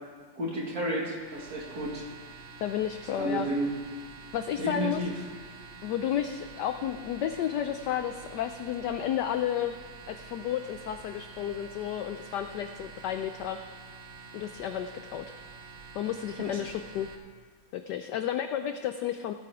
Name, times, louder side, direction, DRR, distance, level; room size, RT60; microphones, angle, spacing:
voice 1, 0.4-2.0 3.1-3.7 4.6-5.1 16.4-16.6, right 1 dB, 45° right, -2 dB, 2.4 m, -32 dB
sound 1, 1.1-17.2, right 4 dB, 60° right, 1.6 m, -48 dB
voice 2, 2.6-3.5 4.3-5.0 5.8-9.8 10.1-13.6 14.3-15.3 15.9-17.1 17.7-19.3, left 10 dB, 75° left, 9 dB, 1.0 m, -32 dB
17.0 x 7.7 x 4.8 m, 1.5 s
omnidirectional pair, 2.3 m